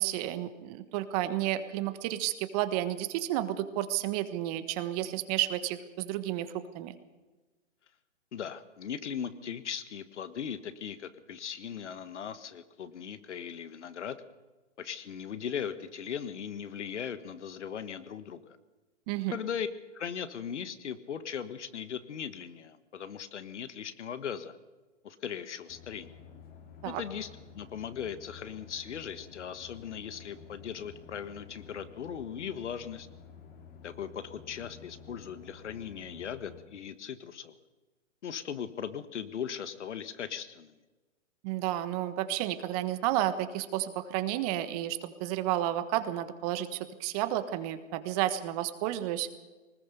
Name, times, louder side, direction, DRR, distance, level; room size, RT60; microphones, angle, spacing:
voice 1, 0.0-6.9 19.1-19.4 26.8-27.0 41.4-49.3, right 13 dB, 30° right, 12 dB, 1.4 m, -31 dB
voice 2, 8.3-14.2 14.8-18.6 19.3-19.7 19.9-24.6 25.0-26.1 26.8-27.3 27.5-33.1 33.8-37.6 38.2-40.8, left 8 dB, 70° left, 13 dB, 1.6 m, -38 dB
sound 1, 25.7-36.6, left 6 dB, 25° left, 2.4 m, -51 dB
20.0 x 19.5 x 6.9 m, 1.2 s
hypercardioid pair, 135°, 37 cm